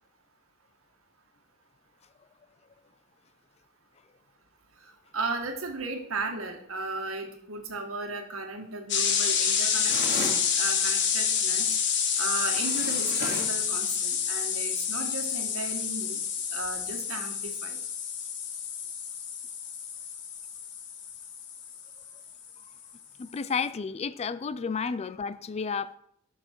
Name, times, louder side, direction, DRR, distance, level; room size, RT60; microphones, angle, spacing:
voice 1, 4.8-10.0 10.6-11.7 12.2-16.2 16.5-17.8, right 3 dB, 85° right, 1.8 m, -35 dB
sound 1, 8.9-22.5, left 7 dB, 60° left, 1.5 m, -29 dB
sound 2, 9.8-10.5 12.4-13.6, right 1 dB, 45° right, 2.7 m, -36 dB
voice 2, 23.2-26.0, left 5 dB, 30° left, 0.4 m, -31 dB
12.0 x 6.6 x 4.6 m
head